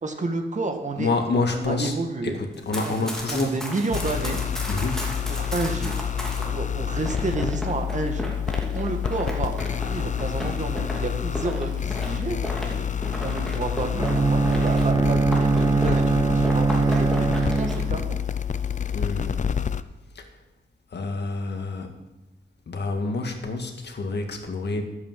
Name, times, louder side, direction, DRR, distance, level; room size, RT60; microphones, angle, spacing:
voice 1, 0.0-2.4 2.8-2.9 3.3-4.4 5.3-6.0 6.4-8.3 8.7-12.4 13.2-17.3 17.6-18.2, right 3 dB, 40° right, 5 dB, 1.8 m, -30 dB
voice 2, 1.0-1.9 2.2-3.6 4.7-5.1 18.9-19.5 20.2-20.3 20.9-22.0 22.7-24.8, left 3 dB, 65° left, 4 dB, 1.9 m, -28 dB
Run, 2.5-6.5 7.1-16.1 16.4-17.8, equal, 5° left, 2.6 m, -35 dB
sound 1, 3.9-19.8, left 8 dB, 40° left, 0.5 m, -28 dB
Bowed string instrument, 14.0-18.2, right 4 dB, 20° right, 0.4 m, -22 dB
12.5 x 8.5 x 7.5 m, 1.1 s
wide cardioid pair, 160°, 19 cm